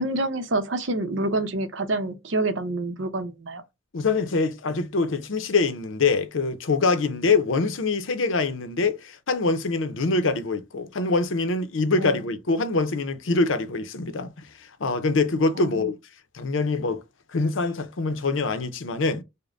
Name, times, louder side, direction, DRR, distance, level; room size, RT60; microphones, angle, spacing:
voice 1, 0.0-3.6 12.0-12.2 15.5-15.9, right 2 dB, 70° right, 0.7 m, -27 dB
voice 2, 3.9-16.0 16.3-17.0 17.3-19.2, left 3 dB, 75° left, 0.7 m, -24 dB
5.1 x 2.1 x 2.5 m
head